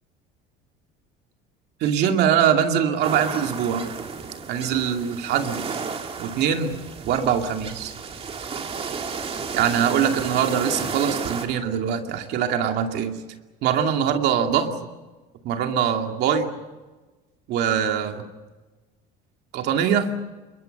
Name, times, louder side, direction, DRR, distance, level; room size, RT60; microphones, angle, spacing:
voice 1, 1.8-3.9 4.5-5.6 6.2-6.8 7.0-7.9 9.5-13.2 13.6-14.7 15.4-16.5 17.5-18.2 19.5-20.1, right 8 dB, 65° right, 4 dB, 2.5 m, -22 dB
sound 1, 3.0-11.5, right 5 dB, 35° right, 2.7 m, -33 dB
28.0 x 22.5 x 6.7 m, 1.2 s
cardioid pair, 120°, 18 cm